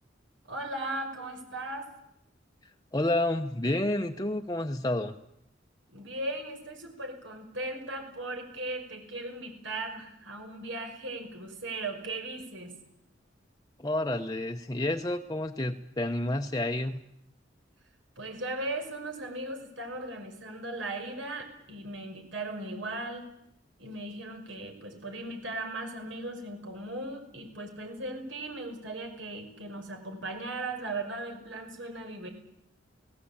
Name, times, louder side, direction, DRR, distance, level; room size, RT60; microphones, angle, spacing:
voice 1, 0.4-1.9 5.9-12.7 18.2-23.2 23.8-32.3, right 2 dB, 80° right, 4 dB, 5.6 m, -37 dB
voice 2, 2.9-5.2 13.8-17.0, left 1 dB, 20° left, 4 dB, 0.9 m, -29 dB
29.5 x 18.0 x 8.7 m, 0.82 s
head